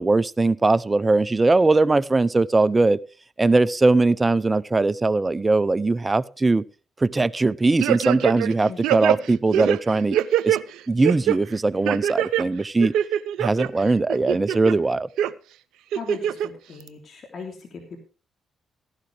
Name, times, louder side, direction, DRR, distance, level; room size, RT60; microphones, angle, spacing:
voice 1, 0.0-3.0 3.4-6.6 7.0-10.2 10.4-10.6 10.9-12.9 13.4-15.1, right 3 dB, 25° right, 20 dB, 0.6 m, -20 dB
sound 1, 7.8-8.5 8.8-10.6 11.0-11.4 11.9-12.4 12.8-13.7 14.1-14.7 15.2-15.3 15.9-16.5 16.9-17.0, right 11 dB, 80° right, 0.5 m, -23 dB
voice 2, 15.9-18.0, left 4 dB, 55° left, 2 dB, 3.3 m, -38 dB
15.0 x 11.5 x 3.4 m, 0.35 s
supercardioid pair, 50°, 0 cm